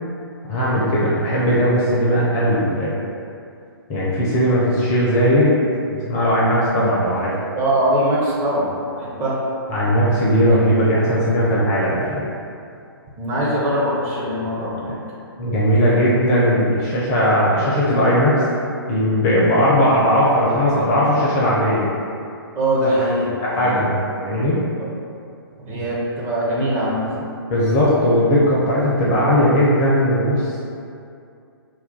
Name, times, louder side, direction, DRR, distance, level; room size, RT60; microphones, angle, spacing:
voice 1, 0.5-2.9 3.9-5.6 6.1-7.3 9.7-12.3 15.4-18.4 18.9-21.9 23.4-23.9 24.2-24.6 27.5-30.4, equal, 20° left, -6 dB, 0.4 m, -18 dB
voice 2, 7.6-9.4 13.2-15.0 22.5-24.0 25.7-27.1, right 1 dB, 20° right, -7 dB, 0.6 m, -22 dB
2.3 x 2.2 x 3.7 m, 2.5 s
figure-of-eight pair, 125°, 13 cm